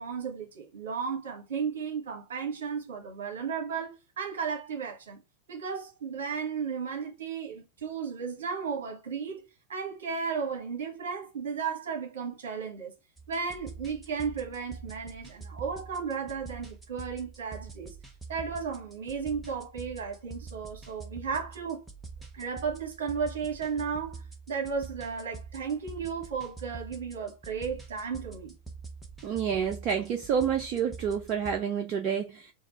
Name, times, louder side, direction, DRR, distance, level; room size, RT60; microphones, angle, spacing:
voice 1, 0.0-5.2 5.5-9.4 9.7-12.9 13.3-17.9 18.3-21.8 22.3-28.5, right 6 dB, 60° right, 1.2 m, -34 dB
sound 1, 13.2-31.6, right 4 dB, 10° right, 1.0 m, -45 dB
voice 2, 29.2-32.5, right 7 dB, 35° right, 0.5 m, -29 dB
3.9 x 2.3 x 4.2 m
figure-of-eight pair, 90°, 0 cm